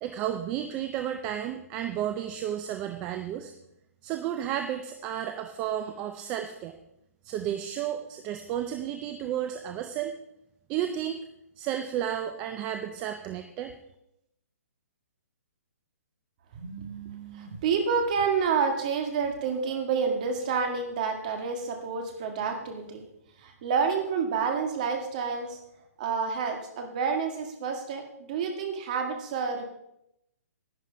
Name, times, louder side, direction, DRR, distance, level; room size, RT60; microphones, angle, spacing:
voice 1, 0.0-3.5 4.0-6.8 7.2-10.1 10.7-11.2 11.6-13.7, right 10 dB, 10° right, 7 dB, 0.4 m, -32 dB
voice 2, 16.5-23.0 23.4-25.6 26.0-29.6, right 5 dB, 30° right, 4 dB, 1.7 m, -29 dB
11.0 x 9.5 x 5.1 m, 0.81 s
hypercardioid pair, 175°, 8 cm